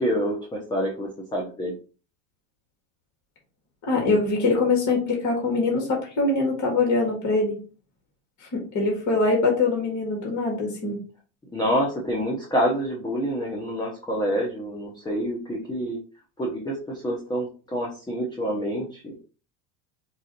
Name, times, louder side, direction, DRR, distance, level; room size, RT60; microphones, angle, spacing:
voice 1, 0.0-1.7 11.5-16.0 16.4-19.2, equal, 10° left, -2 dB, 0.8 m, -27 dB
voice 2, 3.9-7.6 8.5-11.0, left 3 dB, 40° left, -1 dB, 1.8 m, -23 dB
4.6 x 2.5 x 2.9 m, 0.37 s
supercardioid pair, 105°, 47 cm